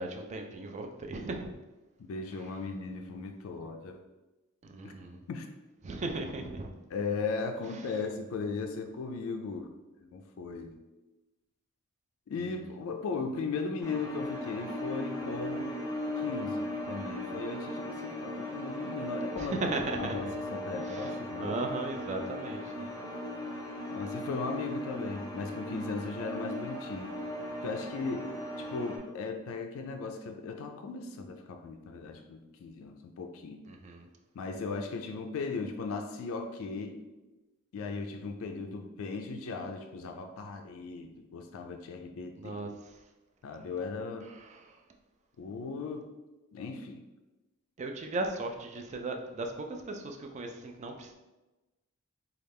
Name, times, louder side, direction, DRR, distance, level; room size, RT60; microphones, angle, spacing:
voice 1, 0.0-1.5 4.6-5.2 5.8-6.7 7.7-7.9 19.4-20.2 20.8-22.9 33.7-34.1 42.4-43.0 44.2-44.8 47.8-51.1, right 2 dB, 30° right, 3 dB, 0.3 m, -37 dB
voice 2, 2.1-4.0 4.8-5.0 5.3-5.5 6.9-9.7 10.0-10.8 12.3-15.8 16.2-19.5 20.0-21.6 23.9-27.1 27.6-28.3 28.6-33.6 34.3-37.0 37.7-42.6 43.4-44.3 45.4-46.1 46.5-47.0, left 4 dB, 65° left, 5 dB, 0.3 m, -37 dB
sound 1, 13.8-29.0, left 1 dB, 15° left, 0.5 m, -38 dB
3.2 x 2.3 x 3.4 m, 1.1 s
head